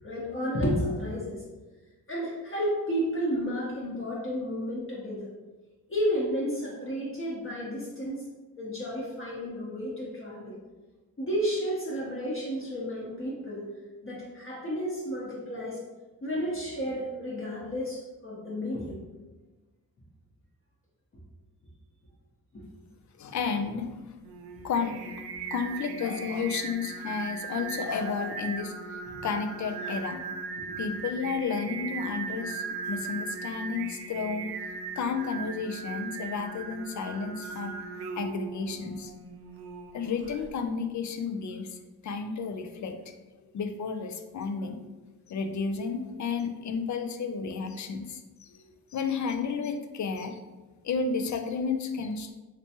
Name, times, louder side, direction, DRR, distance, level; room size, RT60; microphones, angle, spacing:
voice 1, 0.0-1.4 2.1-5.3 5.9-8.2 8.6-10.5 11.2-13.7 14.0-15.8 16.2-19.0 22.5-22.6 29.1-29.2 30.6-30.8, equal, 30° left, -7 dB, 0.9 m, -32 dB
voice 2, 23.2-24.3 24.6-25.1 25.5-30.2 30.8-34.5 35.0-37.8 38.2-39.1 39.9-42.9 43.4-44.8 45.3-50.4 50.8-52.3, left 5 dB, 50° left, 6 dB, 0.4 m, -32 dB
Singing, 24.2-40.5, right 5 dB, 75° right, 0.5 m, -38 dB
3.2 x 3.0 x 2.8 m, 1.2 s
cardioid pair, 90°, 39 cm